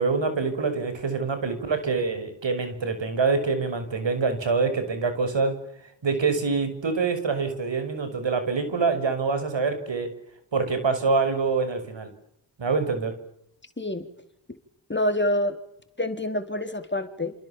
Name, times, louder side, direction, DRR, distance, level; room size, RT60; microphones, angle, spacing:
voice 1, 0.0-5.5 6.0-10.1 10.5-12.1 12.6-13.1, right 4 dB, 70° right, 9 dB, 5.9 m, -25 dB
voice 2, 14.9-15.6 16.0-17.3, left 1 dB, 25° left, 8 dB, 4.1 m, -26 dB
28.0 x 28.0 x 7.4 m, 0.76 s
cardioid pair, 60°, 46 cm